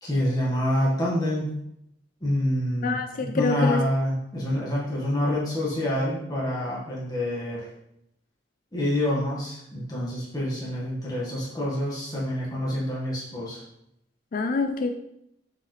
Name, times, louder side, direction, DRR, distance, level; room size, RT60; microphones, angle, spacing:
voice 1, 0.0-1.5 2.2-2.9 3.3-7.6 8.7-13.6, left 1 dB, 20° left, -7 dB, 1.5 m, -27 dB
voice 2, 2.8-3.8 14.3-14.9, left 3 dB, 45° left, 6 dB, 0.4 m, -25 dB
7.1 x 4.8 x 3.2 m, 0.80 s
head